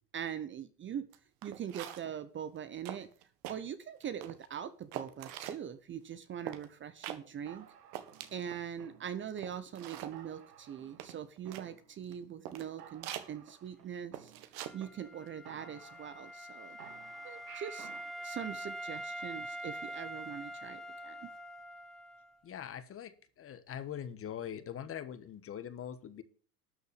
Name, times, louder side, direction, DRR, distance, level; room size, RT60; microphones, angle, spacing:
voice 1, 0.1-1.1 1.4-3.1 3.5-7.7 8.3-14.3 14.7-16.8 17.2-17.9 18.2-21.3, right 9 dB, 25° right, 12 dB, 0.9 m, -42 dB
sound 1, 1.1-1.2 1.4-2.2 2.6-2.7 2.8-3.6 4.0-4.5 4.9-5.6 6.5-6.7 7.0-7.2 7.6-7.7 7.9-8.6 9.0-9.1 9.4-10.2 11.0-11.7 12.1-12.2 12.5-12.7 13.0-13.3 14.1-14.8 15.0-15.3, right 12 dB, 50° right, 1.6 m, -44 dB
sound 2, 7.5-9.4 9.8-9.9 10.1-11.2 11.5-12.2 12.5-12.6 12.8-14.8 15.1-15.2 15.5-16.5 16.8-18.1, right 10 dB, 75° right, 1.8 m, -55 dB
Wind instrument woodwind instrument, 14.6-22.3, right 1 dB, ahead, 0.6 m, -44 dB
voice 2, 22.4-26.2, left 9 dB, 30° left, 12 dB, 1.4 m, -42 dB
12.5 x 6.6 x 6.7 m, 0.42 s
hypercardioid pair, 95°, 47 cm